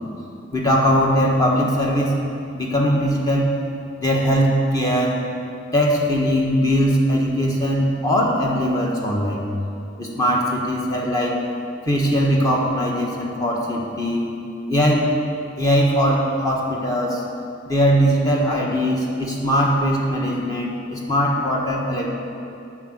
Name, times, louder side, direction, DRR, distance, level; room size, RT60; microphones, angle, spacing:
voice 1, 0.5-2.1 2.5-3.5 4.0-5.2 5.7-9.4 10.0-11.4 11.8-14.2 14.7-15.1 15.6-17.2 17.6-22.1, equal, 20° left, -2 dB, 1.4 m, -20 dB
9.8 x 6.2 x 7.9 m, 2.7 s
head